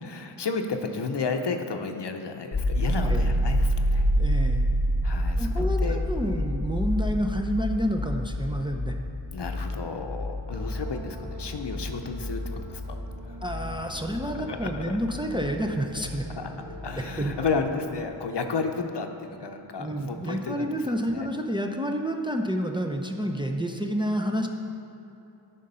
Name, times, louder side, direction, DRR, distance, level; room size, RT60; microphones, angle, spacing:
voice 1, 0.0-4.1 5.0-6.0 6.4-6.5 9.3-13.0 13.3-13.4 14.3-15.0 16.4-16.5 16.8-20.9 21.1-21.3, left 4 dB, 60° left, 5 dB, 0.7 m, -32 dB
sound 1, 2.5-16.3 16.7-17.6, equal, 30° left, 1.2 m, -28 dB
voice 2, 4.2-4.6 5.4-8.9 13.4-16.2 17.2-17.3 19.8-24.5, equal, 10° right, 2 dB, 0.5 m, -29 dB
sound 2, 10.5-18.1, right 3 dB, 70° right, 0.8 m, -43 dB
10.5 x 3.8 x 5.5 m, 3.0 s
wide cardioid pair, 55°, 47 cm